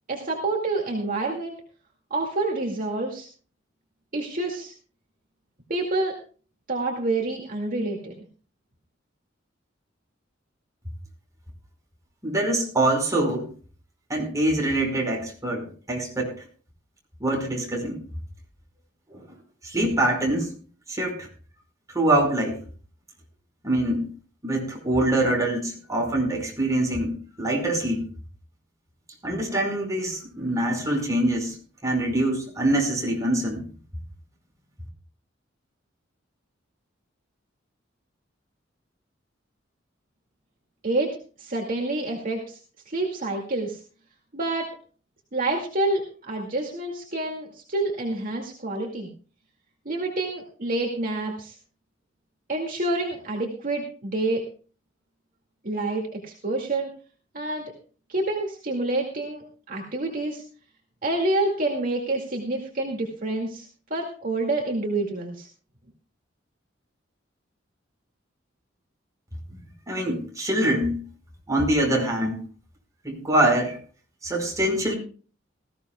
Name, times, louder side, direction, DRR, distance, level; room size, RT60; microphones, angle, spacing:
voice 1, 0.1-1.5 2.1-3.3 4.1-4.7 5.7-6.2 6.7-8.1 40.8-42.6 42.9-43.8 44.3-44.7 45.3-49.1 49.9-51.5 52.5-54.4 55.6-56.9 57.3-57.7 58.1-60.4 61.0-65.5, right 2 dB, 45° right, 0 dB, 2.3 m, -28 dB
voice 2, 12.2-13.5 14.1-16.3 17.2-18.0 19.1-19.2 19.6-20.5 20.9-21.3 21.9-22.6 23.6-24.1 24.4-28.0 29.2-31.5 31.8-33.6 69.9-71.0 71.5-72.4 73.0-73.8 74.2-74.9, right 1 dB, 20° right, 0 dB, 5.0 m, -24 dB
19.5 x 15.0 x 2.3 m, 0.39 s
head